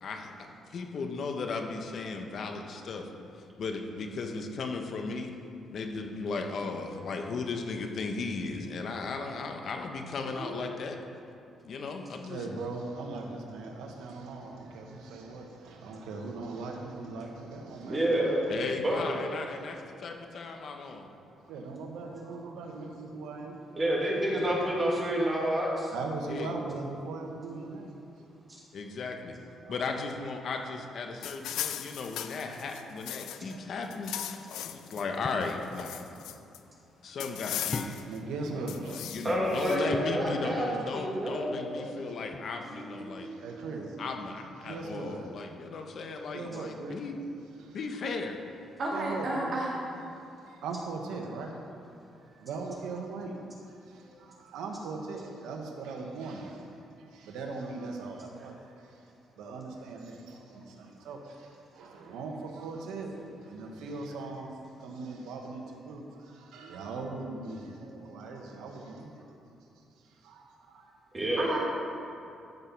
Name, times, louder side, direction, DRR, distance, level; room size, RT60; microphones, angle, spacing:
voice 1, 0.0-0.3 0.7-3.1 3.6-5.3 5.7-11.0 11.6-12.5 18.5-21.1 24.3-24.6 26.3-26.6 28.7-29.3 29.7-36.1 37.0-38.0 38.8-43.3 44.0-47.2 47.7-48.4, left 4 dB, 60° left, 4 dB, 1.2 m, -36 dB
voice 2, 12.0-18.3 21.5-23.6 25.9-28.0 29.6-29.8 38.1-39.1 40.4-40.9 43.2-44.0 44.6-45.2 46.3-47.0 47.6-47.7 48.9-49.6 50.5-51.6 52.4-53.4 53.9-56.7 57.1-58.5 59.4-63.1 63.4-67.8 68.0-69.3 70.2-71.0, right 3 dB, 90° right, 1 dB, 1.3 m, -39 dB
voice 3, 17.8-18.5 18.8-19.0 23.7-25.9 39.2-42.2 42.7-44.0 71.1-71.5, right 1 dB, 25° right, -5 dB, 2.6 m, -30 dB
sound 1, 31.2-33.5 33.8-35.0 35.4-36.6 37.2-38.2 38.7-39.8, left 11 dB, 85° left, 0.5 m, -38 dB
sound 2, 35.2-35.6 37.7-38.3 39.9-40.3 42.3-42.9, left 3 dB, 35° left, 0.5 m, -39 dB
voice 4, 48.7-49.8 54.0-54.1 60.3-60.4 61.7-61.9 67.8-68.0 71.4-71.6, right 2 dB, 60° right, -5 dB, 2.5 m, -34 dB
13.0 x 5.5 x 6.1 m, 2.7 s
cardioid pair, 90°, 0 cm